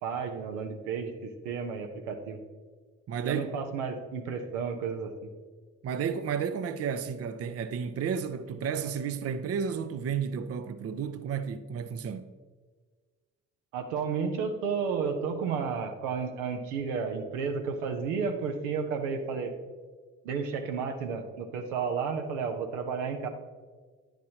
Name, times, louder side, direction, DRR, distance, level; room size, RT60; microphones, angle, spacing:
voice 1, 0.0-2.4 3.2-5.1 13.7-19.5 20.2-23.3, right 5 dB, 80° right, 0.8 m, -32 dB
voice 2, 3.1-3.5 5.8-12.2, right 7 dB, 40° right, 0.6 m, -32 dB
9.5 x 6.1 x 2.8 m
hypercardioid pair, 45°, 37 cm